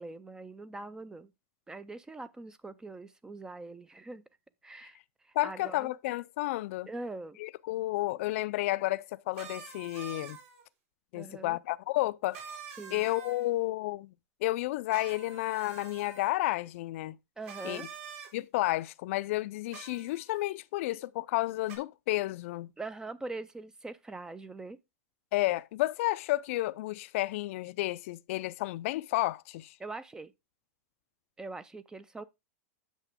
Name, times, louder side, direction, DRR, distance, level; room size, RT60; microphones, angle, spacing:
voice 1, 0.0-1.3 1.7-4.2 4.6-5.0 5.2-5.9 6.9-7.4 11.1-11.6 12.8-13.1 17.4-17.9 22.8-24.8 29.8-30.3 31.4-32.2, right 3 dB, 10° right, 0.4 m, -42 dB
voice 2, 5.4-6.9 7.4-10.4 11.1-12.4 12.9-14.1 14.4-17.2 17.6-17.8 18.3-22.7 25.3-29.7, left 18 dB, 55° left, 0.4 m, -31 dB
sound 1, 9.3-10.6 12.3-13.5 14.9-16.3 17.4-18.3 19.7-20.4 21.7-21.8, right 6 dB, 60° right, 3.5 m, -46 dB
8.2 x 6.4 x 3.5 m
supercardioid pair, 150°, 8 cm